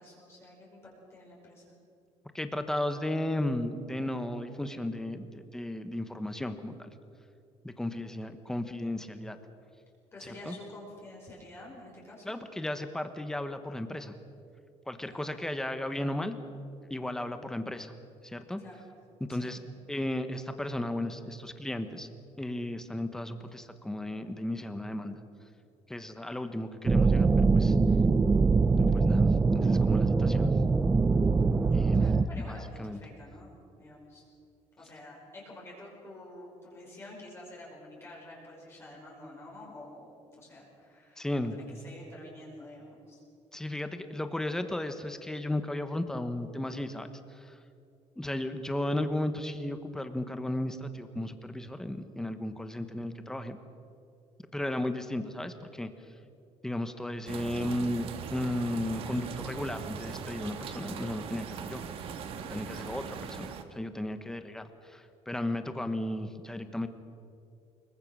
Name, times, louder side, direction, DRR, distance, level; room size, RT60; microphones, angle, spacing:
voice 1, 0.0-1.6 10.1-12.2 15.0-15.4 18.6-18.8 19.3-19.5 32.0-34.2 34.8-43.2, left 1 dB, 20° left, -3 dB, 5.2 m, -49 dB
voice 2, 2.3-6.9 7.6-9.4 10.2-10.5 12.2-14.2 14.9-16.4 16.9-17.9 18.2-18.6 19.2-19.6 19.9-22.1 22.4-25.2 25.9-27.8 28.8-30.5 31.7-32.1 32.4-33.0 41.2-41.6 43.5-47.6 48.2-53.6 54.5-55.9 56.6-61.8 62.5-66.9, left 1 dB, 5° left, 9 dB, 1.1 m, -34 dB
sound 1, 26.9-32.2, right 4 dB, 15° right, 0.5 m, -23 dB
sound 2, 57.3-63.6, right 7 dB, 55° right, 1.6 m, -40 dB
24.5 x 22.5 x 6.3 m, 2.5 s
cardioid pair, 170°, 12 cm